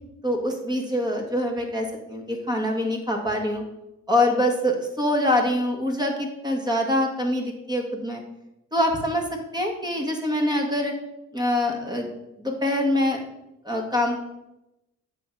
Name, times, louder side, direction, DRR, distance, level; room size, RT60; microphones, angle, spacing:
voice 1, 0.2-3.6 4.1-8.2 8.7-9.2 9.5-10.9 11.3-12.1 12.4-13.2 13.6-14.2, left 1 dB, 15° right, 1 dB, 1.6 m, -24 dB
8.3 x 3.8 x 6.0 m, 0.90 s
cardioid pair, 90°, 30 cm